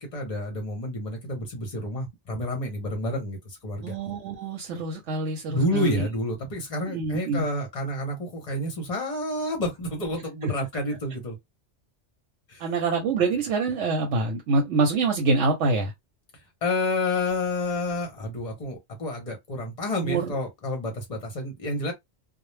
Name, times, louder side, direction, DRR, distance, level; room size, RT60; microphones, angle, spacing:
voice 1, 0.0-3.9 5.5-11.4 12.5-12.6 16.6-21.9, left 1 dB, 40° left, 0.7 m, -29 dB
voice 2, 3.8-6.1 6.9-7.5 10.4-10.5 12.6-15.9 20.0-20.4, right 3 dB, 85° right, 0.9 m, -25 dB
2.1 x 2.0 x 3.1 m
omnidirectional pair, 1.2 m